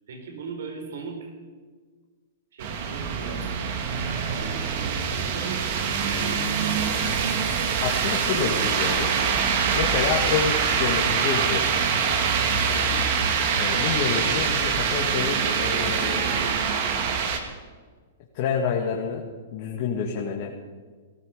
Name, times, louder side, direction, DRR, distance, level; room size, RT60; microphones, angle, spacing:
voice 1, 0.1-1.3 2.5-3.5 4.3-5.7 6.0-7.0 12.7-13.1, right 4 dB, 70° right, 4 dB, 4.0 m, -38 dB
sound 1, 2.6-17.4, right 6 dB, 50° right, 2.2 m, -24 dB
voice 2, 7.8-9.1 9.7-11.7 13.5-16.5 18.3-19.2 19.5-20.5, left 6 dB, 45° left, -1 dB, 2.1 m, -28 dB
18.5 x 14.0 x 5.2 m, 1.5 s
hypercardioid pair, 140°, 0 cm